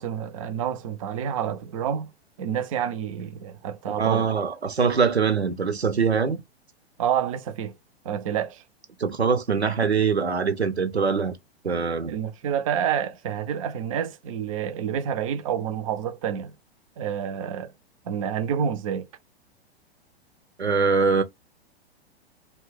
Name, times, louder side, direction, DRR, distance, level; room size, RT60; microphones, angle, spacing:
voice 1, 0.0-2.1 2.4-4.3 7.0-7.8 8.0-8.6 12.1-16.5 17.0-17.7 18.1-19.1, right 8 dB, 35° right, 0.4 m, -28 dB
voice 2, 4.0-6.4 9.0-11.3 11.6-12.2 20.6-21.2, right 5 dB, 90° right, 0.6 m, -23 dB
2.7 x 2.1 x 3.3 m
figure-of-eight pair, 100°, 31 cm